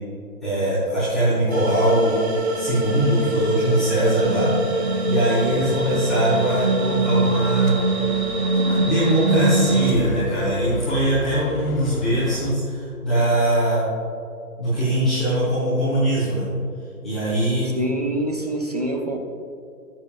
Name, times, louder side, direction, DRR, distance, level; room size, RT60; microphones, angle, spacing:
voice 1, 0.4-2.2 2.5-7.7 8.5-13.8 14.6-16.4 17.0-17.7, right 1 dB, ahead, -23 dB, 0.9 m, -22 dB
sound 1, 1.5-9.9, right 2 dB, 45° right, 1.4 m, -23 dB
sound 2, 7.3-12.5, left 3 dB, 60° left, 1.0 m, -34 dB
voice 2, 17.7-19.2, right 1 dB, 25° right, 2 dB, 0.7 m, -26 dB
19.0 x 7.5 x 2.5 m, 2.5 s
hypercardioid pair, 170°, 46 cm